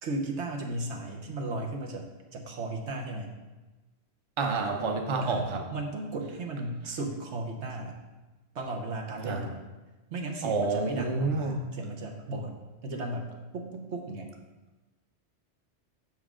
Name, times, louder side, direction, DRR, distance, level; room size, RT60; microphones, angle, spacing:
voice 1, 0.0-3.3 5.2-7.9 8.5-9.5 10.1-12.6 12.8-14.3, right 2 dB, 85° right, 2 dB, 1.3 m, -35 dB
voice 2, 4.4-5.7 9.2-9.5 10.4-11.6, right 3 dB, 30° right, 3 dB, 0.7 m, -29 dB
7.3 x 6.1 x 3.7 m, 1.2 s
omnidirectional pair, 1.1 m